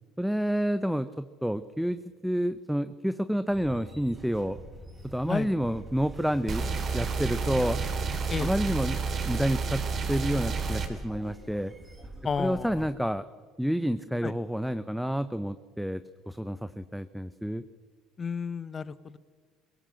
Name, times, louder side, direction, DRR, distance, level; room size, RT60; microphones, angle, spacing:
voice 1, 0.2-4.6 5.0-7.8 8.4-9.0 9.3-9.8 10.1-11.7 12.4-13.2 13.6-16.0 16.3-17.6, equal, ahead, 12 dB, 0.8 m, -29 dB
sound 1, 3.5-12.9, right 1 dB, 20° right, 4.8 m, -46 dB
sound 2, 6.5-10.9, right 5 dB, 40° right, 3.4 m, -30 dB
voice 2, 12.2-12.8 14.2-14.3 18.2-19.2, left 6 dB, 35° left, 16 dB, 1.1 m, -32 dB
21.0 x 17.5 x 7.7 m, 1.6 s
hypercardioid pair, 75°, 0 cm